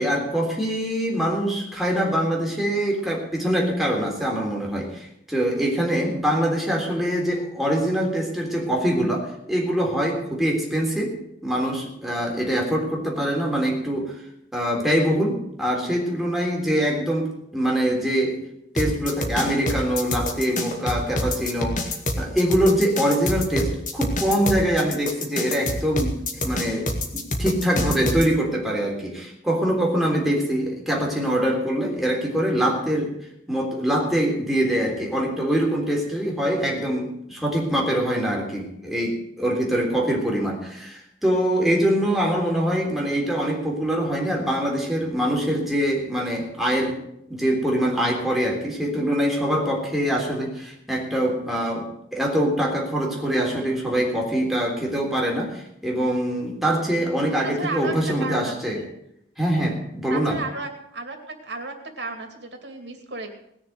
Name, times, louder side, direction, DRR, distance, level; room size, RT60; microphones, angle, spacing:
voice 1, 0.0-11.1 11.4-14.1 14.5-18.4 18.7-21.8 22.2-26.2 26.4-26.9 27.1-33.1 33.5-47.0 47.3-58.8 59.4-60.4, equal, ahead, -2 dB, 3.6 m, -24 dB
sound 1, 18.8-28.3, left 1 dB, 45° left, 2.1 m, -26 dB
voice 2, 57.5-57.9 58.2-58.9 60.1-61.2 61.4-63.3, right 3 dB, 85° right, 4 dB, 2.6 m, -34 dB
19.0 x 6.9 x 7.9 m, 0.75 s
head